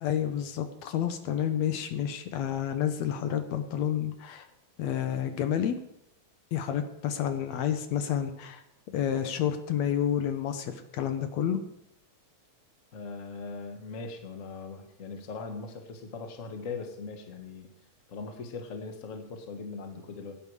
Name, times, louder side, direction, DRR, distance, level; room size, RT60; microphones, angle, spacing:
voice 1, 0.0-4.5 4.8-5.8 6.5-8.6 8.9-11.6, left 9 dB, 75° left, 8 dB, 2.1 m, -29 dB
voice 2, 12.9-17.7 18.1-20.4, left 4 dB, 35° left, 5 dB, 1.3 m, -40 dB
16.0 x 9.4 x 4.8 m, 0.79 s
omnidirectional pair, 3.3 m